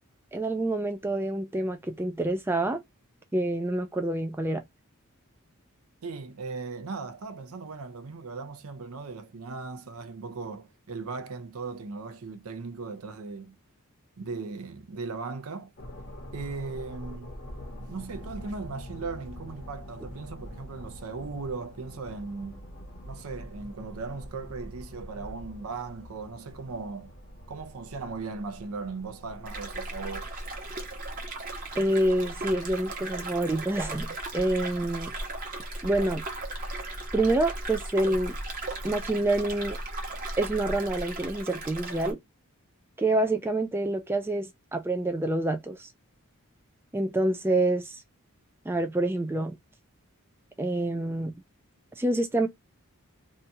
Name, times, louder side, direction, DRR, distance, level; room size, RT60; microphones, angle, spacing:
voice 1, 0.3-2.8 3.3-4.6 31.8-35.1 35.8-36.2 37.1-38.4 38.8-39.8 40.4-42.2 43.0-45.9 46.9-48.0 48.7-49.6 50.6-51.3 52.0-52.5, right 2 dB, 10° right, 0.3 m, -27 dB
voice 2, 6.0-13.5 14.2-15.7 16.3-17.3 17.9-22.6 23.0-27.1 27.5-30.3, right 4 dB, 70° right, 0.5 m, -38 dB
sound 1, 15.8-32.4, equal, 45° left, 0.8 m, -45 dB
sound 2, 29.4-42.1, right 2 dB, 40° right, 1.0 m, -36 dB
2.7 x 2.3 x 2.7 m
head